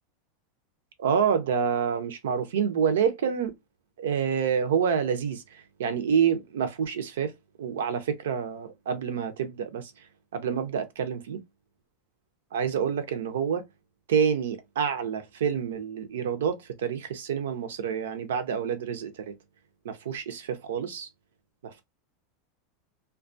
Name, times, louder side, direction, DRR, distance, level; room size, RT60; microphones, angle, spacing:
voice 1, 1.0-3.5 4.0-7.3 7.6-10.1 10.3-11.4 12.5-13.6 14.1-19.3 19.8-21.1 21.6-21.8, right 7 dB, 80° right, 0.6 m, -28 dB
2.3 x 2.2 x 2.5 m
hypercardioid pair, 100°, 0 cm